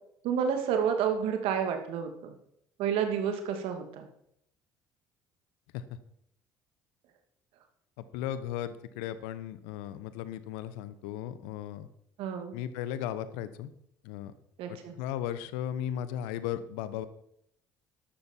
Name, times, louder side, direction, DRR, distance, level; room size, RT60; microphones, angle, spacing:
voice 1, 0.2-2.3 2.8-4.0 12.2-12.6 14.6-14.9, right 7 dB, 65° right, 6 dB, 2.3 m, -30 dB
voice 2, 8.0-11.9 12.5-13.7 14.0-14.3 14.7-17.1, left 11 dB, 75° left, 14 dB, 1.0 m, -36 dB
13.0 x 12.0 x 4.5 m, 0.73 s
hypercardioid pair, 60°, 10 cm